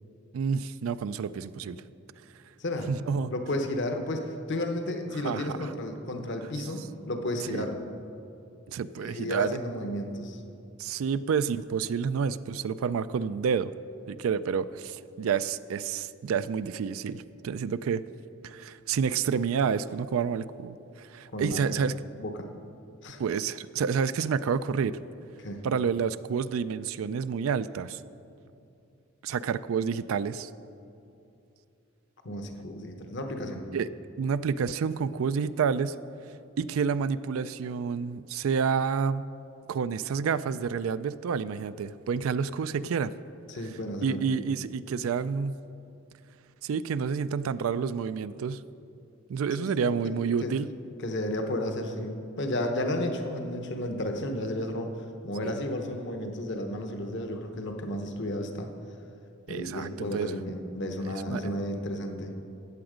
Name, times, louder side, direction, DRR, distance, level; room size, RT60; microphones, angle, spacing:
voice 1, 0.3-1.8 2.9-3.3 5.2-5.7 7.5-7.7 8.7-9.6 10.8-13.7 14.1-18.0 18.4-22.0 23.2-25.0 25.6-28.0 29.2-30.5 33.7-33.9 34.2-36.0 36.6-39.3 39.7-43.1 44.0-45.6 46.6-48.6 49.3-50.7 55.4-55.5 59.5-60.4 61.1-61.4, right 6 dB, 75° right, 14 dB, 0.4 m, -29 dB
voice 2, 3.3-7.8 9.0-10.4 21.3-21.6 22.2-22.5 23.0-23.2 25.4-25.6 32.2-33.7 43.5-44.5 49.6-49.9 50.4-50.5 51.0-58.7 59.5-62.3, left 1 dB, 60° left, 5 dB, 1.0 m, -33 dB
14.0 x 8.8 x 5.1 m, 2.7 s
head